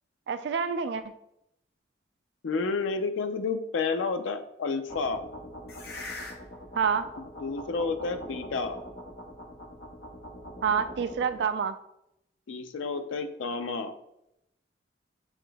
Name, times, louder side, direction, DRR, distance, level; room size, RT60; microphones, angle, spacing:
voice 1, 0.3-1.0 6.8-7.1 10.6-11.7, right 6 dB, 65° right, 10 dB, 0.3 m, -27 dB
voice 2, 2.4-5.2 7.4-8.8 12.5-13.9, left 4 dB, 90° left, 8 dB, 0.4 m, -30 dB
sound 1, 4.9-11.5, left 1 dB, 55° left, 0.8 m, -42 dB
7.0 x 3.3 x 2.2 m, 0.81 s
head